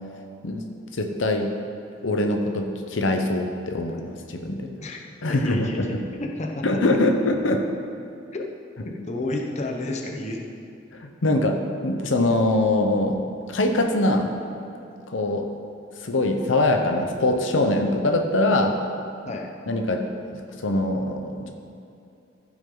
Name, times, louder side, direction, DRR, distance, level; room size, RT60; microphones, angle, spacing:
voice 1, 0.9-1.5 2.0-4.7 5.2-6.0 6.6-7.6 10.9-11.6 11.8-13.2 13.5-14.3 15.1-15.5 16.0-18.8 19.7-21.5, left 2 dB, 90° left, 4 dB, 0.8 m, -23 dB
voice 2, 5.3-6.6 8.8-10.5 19.2-19.5, left 2 dB, 40° left, 0 dB, 0.9 m, -31 dB
15.0 x 6.1 x 3.9 m, 2.7 s
head